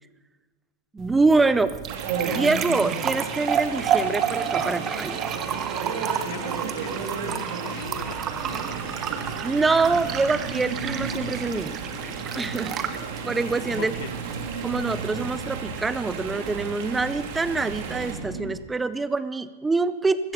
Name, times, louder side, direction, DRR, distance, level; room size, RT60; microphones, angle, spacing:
voice 1, 0.9-1.7 2.2-5.3 9.4-11.8 12.3-14.0 14.6-20.3, right 3 dB, 10° right, 14 dB, 0.6 m, -25 dB
sound 1, 1.0-16.0, right 8 dB, 25° right, 1.0 m, -31 dB
Chatter / Stream, 1.9-18.1, right 6 dB, 55° right, 2.6 m, -34 dB
voice 2, 6.0-9.1 12.5-12.6 13.7-14.1, left 10 dB, 60° left, 11 dB, 1.3 m, -41 dB
sound 2, 7.8-18.5, right 4 dB, 75° right, 2.8 m, -38 dB
15.0 x 13.0 x 6.7 m, 1.4 s
supercardioid pair, 150°, 0 cm